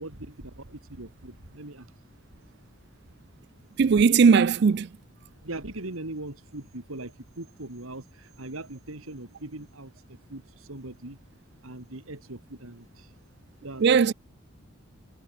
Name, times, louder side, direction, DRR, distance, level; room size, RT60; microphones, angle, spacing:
voice 1, 0.0-1.9 5.4-9.9 10.3-11.2 11.6-13.1 13.6-13.9, right 2 dB, 80° right, 2.6 m, -40 dB
voice 2, 3.8-4.9 13.8-14.1, right 5 dB, 50° right, 0.4 m, -18 dB
head